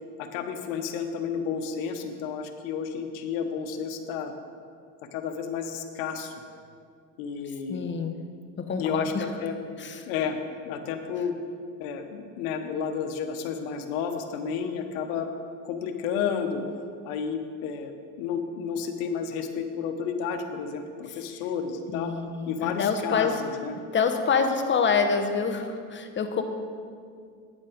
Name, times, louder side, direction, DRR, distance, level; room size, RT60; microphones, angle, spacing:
voice 1, 0.2-4.3 5.1-6.3 7.2-7.9 8.8-9.6 10.0-10.4 10.6-11.3 11.8-15.3 15.6-16.6 17.0-22.1 22.5-23.7, left 6 dB, 85° left, 6 dB, 1.0 m, -31 dB
voice 2, 7.7-8.2 8.6-9.3 9.8-10.1 21.9-23.3 23.9-26.4, left 5 dB, 30° left, 5 dB, 0.9 m, -26 dB
9.7 x 7.4 x 5.1 m, 2.2 s
supercardioid pair, 100°, 40 cm